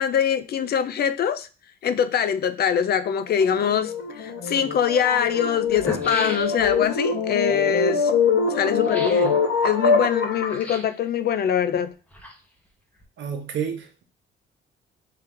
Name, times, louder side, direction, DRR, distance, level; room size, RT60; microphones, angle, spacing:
voice 1, 0.0-1.5 1.8-8.1 8.5-11.9, left 8 dB, 55° left, 0.4 m, -23 dB
sound 1, 3.3-10.6, left 5 dB, 70° left, 1.1 m, -24 dB
sound 2, 4.3-4.4 5.3-5.4 5.6-6.9 8.8-9.3 10.5-11.0 11.9-12.7 13.0-13.1, equal, 5° left, 1.0 m, -36 dB
voice 2, 13.2-14.0, right 7 dB, 65° right, 0.9 m, -30 dB
3.8 x 2.8 x 3.6 m
cardioid pair, 90°, 20 cm